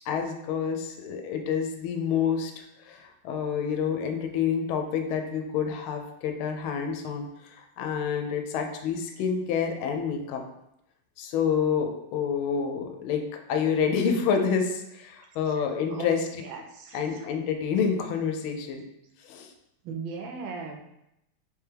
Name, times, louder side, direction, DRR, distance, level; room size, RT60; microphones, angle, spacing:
voice 1, 0.1-7.3 7.6-10.4 11.2-13.2 13.5-16.4 16.9-18.8 19.2-19.5, left 6 dB, 80° left, 4 dB, 1.4 m, -28 dB
voice 2, 15.9-17.0 19.8-20.8, right 4 dB, 75° right, 3 dB, 1.2 m, -37 dB
3.4 x 3.2 x 3.3 m, 0.84 s
omnidirectional pair, 2.4 m